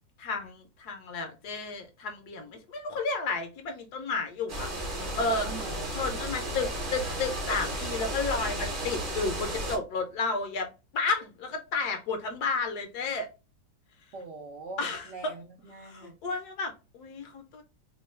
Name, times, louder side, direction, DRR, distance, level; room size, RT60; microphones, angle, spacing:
voice 1, 0.2-5.5 5.9-13.3 14.8-15.3 15.8-17.6, left 4 dB, 70° left, 1.1 m, -32 dB
sound 1, 4.5-9.8, right 1 dB, 40° right, 0.8 m, -33 dB
voice 2, 5.4-6.0 14.1-16.2, right 3 dB, 65° right, 0.7 m, -43 dB
3.0 x 2.2 x 4.2 m
omnidirectional pair, 2.0 m